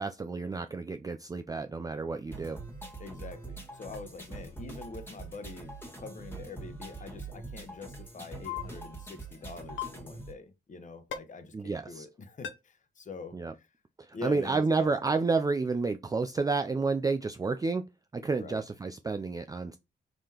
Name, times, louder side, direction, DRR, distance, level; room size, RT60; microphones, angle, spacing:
voice 1, 0.0-2.6 11.5-12.1 13.3-13.5 14.0-17.8 18.1-19.8, right 4 dB, 20° right, 0.4 m, -30 dB
sound 1, 2.3-10.3, right 3 dB, 10° left, 1.7 m, -44 dB
voice 2, 3.0-13.7 14.1-14.9 18.4-18.6, left 3 dB, 40° left, 0.9 m, -45 dB
sound 2, 8.4-8.6 9.8-9.9 11.1-11.2 12.4-12.5, left 10 dB, 80° left, 0.7 m, -34 dB
4.9 x 3.8 x 2.9 m
cardioid pair, 95°, 19 cm